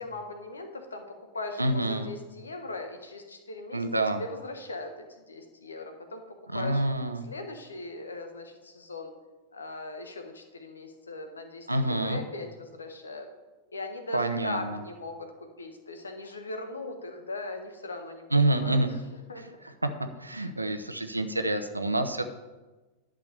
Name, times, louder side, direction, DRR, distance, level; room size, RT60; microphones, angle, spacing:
voice 1, 0.0-3.8 4.2-6.2 6.5-6.8 7.2-9.1 9.5-13.3 13.7-18.3 18.6-19.0 19.3-19.6, left 2 dB, 75° left, 6 dB, 1.3 m, -39 dB
voice 2, 1.6-2.1 3.7-4.2 6.5-7.3 11.7-12.2 14.1-14.8 18.3-18.9 20.2-22.2, right 1 dB, 85° right, 8 dB, 0.8 m, -27 dB
11.0 x 4.8 x 6.8 m, 1.2 s
figure-of-eight pair, 90°, 0 cm